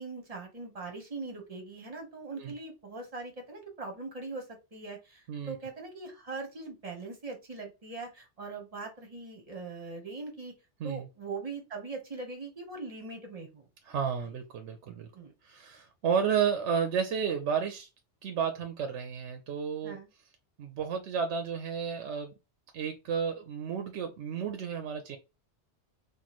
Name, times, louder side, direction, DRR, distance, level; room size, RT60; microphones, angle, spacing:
voice 1, 0.0-10.6 10.8-13.7 14.9-15.3 19.8-20.1, right 3 dB, 35° right, 1.1 m, -41 dB
voice 2, 13.9-15.1 15.4-17.9 18.2-20.0 20.6-22.3 22.7-25.2, right 7 dB, 85° right, 0.9 m, -32 dB
3.1 x 2.5 x 4.0 m
omnidirectional pair, 1.2 m